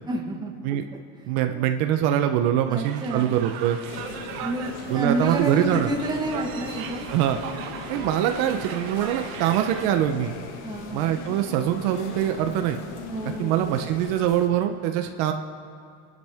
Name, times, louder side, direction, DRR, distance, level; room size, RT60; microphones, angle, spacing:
voice 1, 0.1-0.5 1.5-1.7 2.7-3.5 4.4-7.1 10.6-11.2 13.1-13.9, right 2 dB, 10° right, 0 dB, 1.4 m, -30 dB
voice 2, 1.3-3.8 4.9-5.9 7.1-7.4 7.9-10.3 10.9-12.8 13.4-15.3, right 11 dB, 55° right, 6 dB, 0.9 m, -23 dB
sound 1, 2.8-9.8, right 8 dB, 75° right, 1.7 m, -38 dB
sound 2, 3.9-14.5, left 5 dB, 45° left, 1.5 m, -39 dB
29.0 x 12.0 x 3.6 m, 2.3 s
cardioid pair, 160°, 42 cm